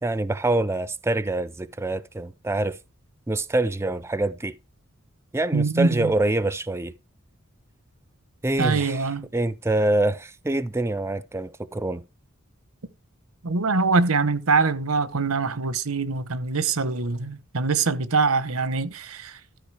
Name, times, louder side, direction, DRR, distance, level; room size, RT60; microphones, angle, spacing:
voice 1, 0.0-2.8 3.3-4.5 5.3-6.9 8.4-9.1 9.3-12.0, right 2 dB, 10° right, 0.4 m, -25 dB
voice 2, 5.5-6.1 8.6-9.3 13.4-19.4, right 4 dB, 85° right, 0.9 m, -23 dB
13.0 x 4.9 x 4.9 m
head